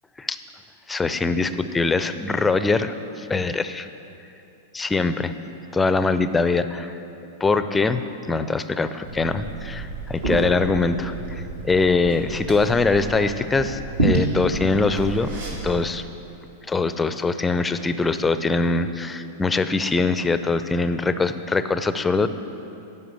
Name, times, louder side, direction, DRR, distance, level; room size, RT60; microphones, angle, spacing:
voice 1, 0.9-3.9 4.7-5.3 5.7-6.9 7.4-15.3 15.6-16.0 16.7-22.3, left 3 dB, 15° left, 11 dB, 0.5 m, -23 dB
Liquid, 9.0-15.8, right 2 dB, 75° right, 2.4 m, -29 dB
11.0 x 5.4 x 8.0 m, 2.8 s
figure-of-eight pair, 95°, 0 cm